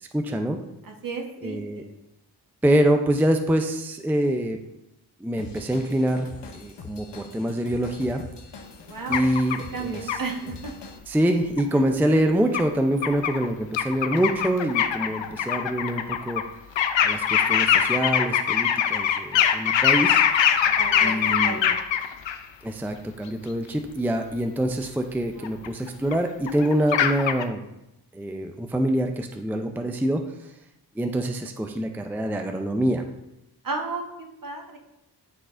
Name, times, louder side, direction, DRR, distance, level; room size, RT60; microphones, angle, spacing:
voice 1, 0.1-0.6 1.4-1.8 2.6-4.6 5.2-6.3 6.5-8.2 9.1-10.1 11.1-16.4 17.0-20.2 21.0-21.6 22.6-27.6 28.1-30.2 31.0-33.0, right 1 dB, 5° right, 5 dB, 0.5 m, -25 dB
voice 2, 0.8-1.9 8.8-9.2 9.7-10.7 11.7-11.8 20.8-21.8 25.4-25.6 33.6-34.1 34.4-34.8, right 4 dB, 50° right, 1 dB, 1.3 m, -34 dB
Drum kit / Drum, 5.4-11.0, left 4 dB, 70° left, 0.9 m, -42 dB
sound 1, 9.1-9.6 10.1-10.2 11.6-11.7 12.5-12.6 13.0-13.5 13.7-16.4 16.8-22.4 24.8-24.9 25.4-26.1 26.5-27.4, left 9 dB, 90° left, 0.6 m, -22 dB
11.0 x 3.9 x 2.5 m, 0.88 s
cardioid pair, 55°, 43 cm